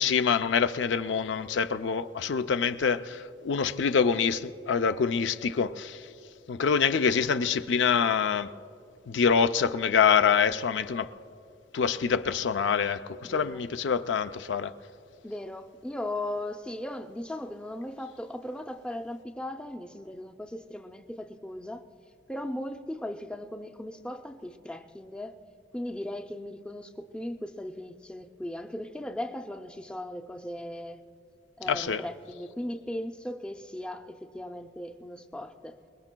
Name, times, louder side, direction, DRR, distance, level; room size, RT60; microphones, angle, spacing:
voice 1, 0.0-6.1 6.5-8.5 9.1-11.1 11.7-14.7 31.7-32.0, left 6 dB, 90° left, 0.4 m, -25 dB
voice 2, 13.2-13.6 15.2-21.8 22.3-25.4 25.7-31.0 31.6-35.8, left 1 dB, 5° left, 0.5 m, -37 dB
25.5 x 21.0 x 2.2 m
head